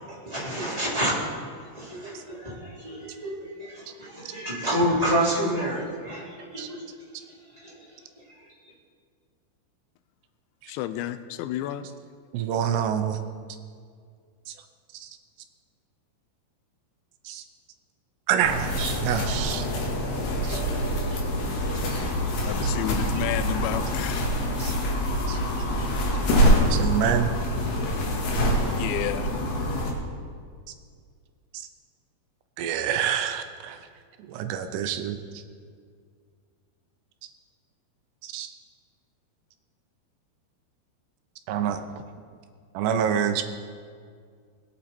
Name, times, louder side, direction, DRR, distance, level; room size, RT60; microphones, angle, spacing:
voice 1, 0.2-1.1 1.8-3.3 3.6-6.3 6.5-6.6, equal, 10° right, -7 dB, 2.8 m, -28 dB
voice 2, 10.7-11.9 22.4-24.3 28.7-29.3, left 12 dB, 90° left, 11 dB, 2.9 m, -31 dB
voice 3, 12.3-13.2 14.5-14.6 14.9-15.1 17.3-17.4 18.3-19.6 20.4-20.6 21.1-21.2 21.7-21.9 24.6-24.8 25.3-25.4 26.7-27.3 31.5-31.7 32.6-33.9 34.3-35.4 38.2-38.5 41.5-42.0 42.7-43.4, right 9 dB, 80° right, 8 dB, 2.7 m, -27 dB
sound 1, 18.4-29.9, equal, 65° left, 3.8 m, -25 dB
20.5 x 8.8 x 4.4 m, 2.1 s
omnidirectional pair, 5.1 m